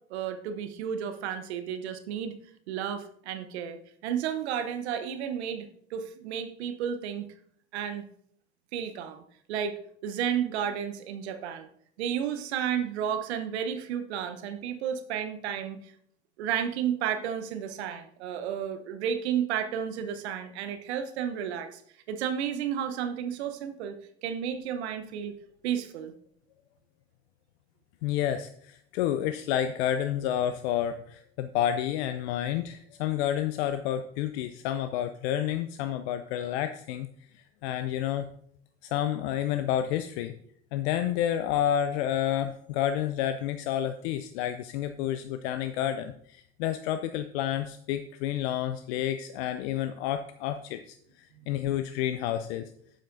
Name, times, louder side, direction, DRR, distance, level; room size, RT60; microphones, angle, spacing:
voice 1, 0.1-2.3 2.7-7.2 7.7-8.0 8.7-9.2 9.5-11.7 12.0-15.9 16.4-21.8 22.1-24.0 24.2-25.3 25.6-26.1, right 8 dB, 80° right, 9 dB, 0.9 m, -32 dB
voice 2, 28.0-37.1 37.3-38.3 38.8-40.3 40.7-52.7, left 11 dB, 70° left, 10 dB, 0.5 m, -30 dB
11.0 x 7.6 x 2.6 m, 0.64 s
hypercardioid pair, 65°, 33 cm